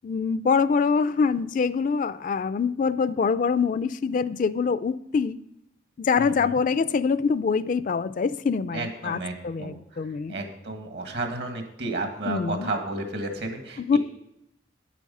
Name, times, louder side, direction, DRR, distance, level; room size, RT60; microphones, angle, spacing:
voice 1, 0.0-5.4 6.0-9.2 9.4-10.3 12.3-12.7 13.9-14.0, left 5 dB, 45° left, 15 dB, 0.3 m, -24 dB
voice 2, 6.2-6.6 8.7-14.0, right 2 dB, 65° right, 5 dB, 1.7 m, -33 dB
9.3 x 8.4 x 5.3 m, 0.82 s
head